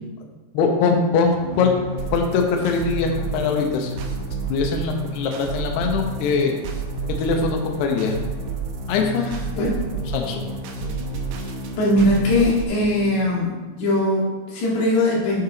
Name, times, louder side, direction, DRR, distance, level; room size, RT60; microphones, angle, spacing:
voice 1, 0.5-1.8 2.1-3.9 4.5-6.6 7.2-8.2 8.9-9.7 10.1-10.4, left 4 dB, 90° left, 2 dB, 2.3 m, -22 dB
sound 1, 1.4-13.4, left 3 dB, 60° right, 2.5 m, -34 dB
sound 2, 2.0-12.7, right 10 dB, 80° right, 2.8 m, -31 dB
voice 2, 9.2-9.8 11.4-11.5 11.8-15.4, left 1 dB, 60° left, -6 dB, 3.8 m, -21 dB
8.6 x 6.6 x 3.8 m, 1.2 s
omnidirectional pair, 6.0 m